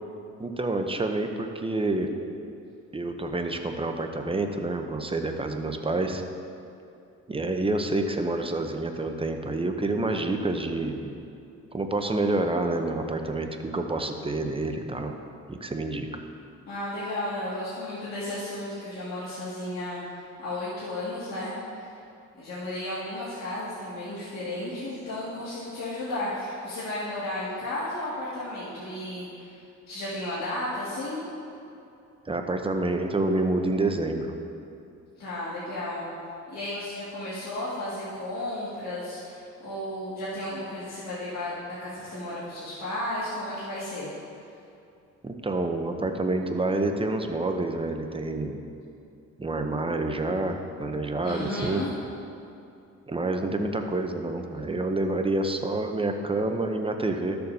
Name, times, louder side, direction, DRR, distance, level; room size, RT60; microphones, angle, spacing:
voice 1, 0.4-2.1 2.9-6.2 7.3-11.2 11.7-15.2 15.5-16.2 32.3-34.3 45.2-48.6 49.4-51.8 53.1-57.4, right 2 dB, 20° right, 5 dB, 0.7 m, -28 dB
voice 2, 16.7-21.9 22.4-29.6 29.9-31.2 35.2-36.1 36.5-41.5 41.8-44.1 51.2-51.9, left 1 dB, 60° left, -10 dB, 2.1 m, -33 dB
13.5 x 6.8 x 2.7 m, 2.6 s
cardioid pair, 90°, 30 cm